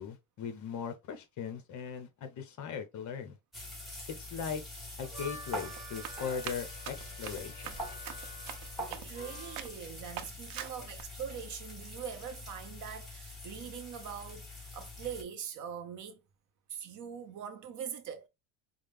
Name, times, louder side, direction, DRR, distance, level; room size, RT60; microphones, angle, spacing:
voice 1, 0.0-3.4 4.2-4.6 5.0-7.8, left 7 dB, 40° left, 0.9 m, -39 dB
sound 1, 3.5-15.2, left 1 dB, ahead, 1.3 m, -44 dB
Harmonica, 4.8-9.8, equal, 15° right, 0.8 m, -49 dB
Run, 5.7-9.3 9.6-9.8 10.2-11.0, right 10 dB, 85° right, 0.9 m, -44 dB
voice 2, 8.9-16.2 16.7-18.3, right 8 dB, 40° right, 0.6 m, -42 dB
5.2 x 2.0 x 3.4 m
cardioid pair, 155°, 45 cm